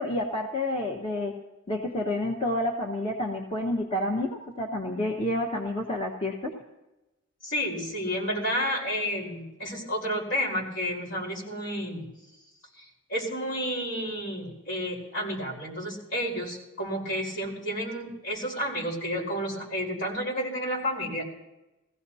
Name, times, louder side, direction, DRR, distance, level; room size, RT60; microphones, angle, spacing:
voice 1, 0.0-1.3 1.7-6.5, left 1 dB, 25° left, 0 dB, 1.2 m, -29 dB
voice 2, 7.4-12.1 12.8-21.2, equal, 65° left, -2 dB, 4.5 m, -31 dB
21.0 x 16.0 x 2.8 m, 1.0 s
head